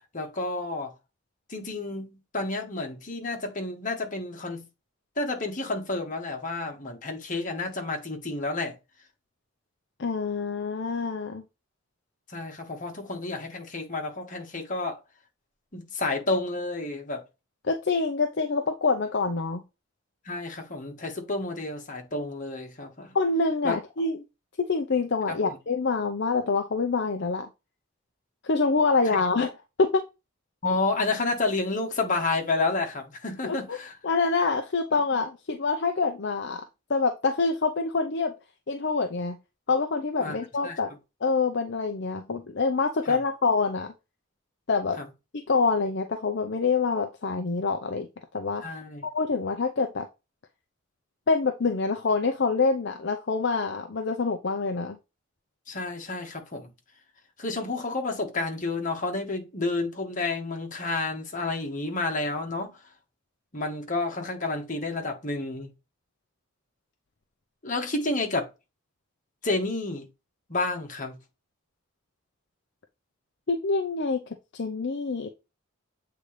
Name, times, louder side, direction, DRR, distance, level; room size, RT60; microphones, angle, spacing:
voice 1, 0.1-0.9 1.5-4.7 5.2-8.7 12.3-15.0 15.7-17.2 20.3-23.1 23.6-23.8 25.3-25.6 29.1-29.2 30.6-34.0 34.9-35.0 40.2-40.4 40.6-40.8 43.1-43.2 45.0-45.1 48.6-49.1 55.7-56.7 57.4-62.8 63.5-65.7 67.6-68.5 69.4-70.1 70.5-71.2, left 3 dB, 40° left, 1.7 m, -30 dB
voice 2, 10.0-11.4 17.6-19.6 23.1-24.2 24.6-27.5 28.4-29.5 29.8-30.0 33.4-33.8 34.0-36.6 36.9-38.3 38.7-39.4 39.7-40.9 41.2-43.9 44.7-45.0 45.5-48.1 48.3-48.8 49.1-50.1 51.3-55.0 73.5-74.2 74.5-75.3, left 4 dB, 60° left, 0.7 m, -26 dB
8.1 x 3.9 x 3.3 m
head